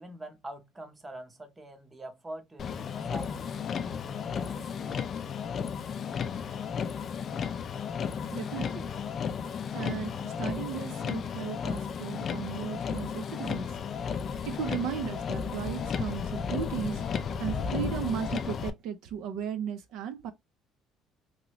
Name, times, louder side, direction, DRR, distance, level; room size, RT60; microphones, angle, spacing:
voice 1, 0.0-5.0, right 1 dB, 15° right, 0.7 m, -45 dB
Motor vehicle (road), 2.6-18.7, left 6 dB, 40° left, 0.3 m, -34 dB
voice 2, 8.3-8.9 9.7-13.8 14.2-20.3, right 9 dB, 70° right, 0.4 m, -36 dB
3.0 x 2.6 x 2.8 m
cardioid pair, 135°, 0 cm